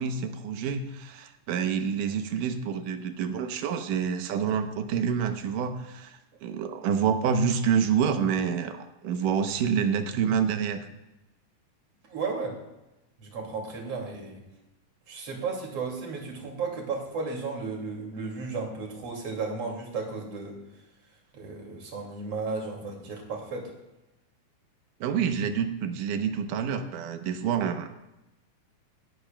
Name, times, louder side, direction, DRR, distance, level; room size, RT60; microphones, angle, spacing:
voice 1, 0.0-10.9 25.0-28.0, right 7 dB, 80° right, 8 dB, 2.4 m, -28 dB
voice 2, 12.1-12.6 13.2-14.4 15.1-20.6 21.3-23.7, right 4 dB, 50° right, 0 dB, 3.1 m, -34 dB
17.5 x 11.0 x 2.2 m, 0.96 s
omnidirectional pair, 3.7 m